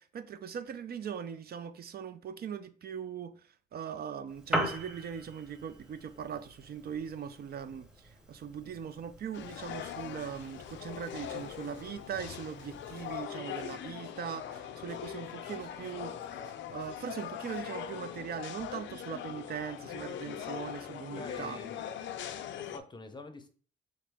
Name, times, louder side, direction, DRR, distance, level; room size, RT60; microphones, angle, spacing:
voice 1, 0.0-16.1 16.7-21.6, right 7 dB, 50° right, 0.5 m, -40 dB
Piano, 4.3-13.3, right 1 dB, 5° right, 0.8 m, -41 dB
sound 1, 9.3-22.8, left 10 dB, 70° left, 0.5 m, -41 dB
sound 2, 9.9-17.6, right 2 dB, 75° right, 1.9 m, -62 dB
voice 2, 21.2-21.8 22.6-23.5, left 2 dB, 25° left, 0.6 m, -46 dB
3.7 x 3.0 x 3.5 m
cardioid pair, 90°, 20 cm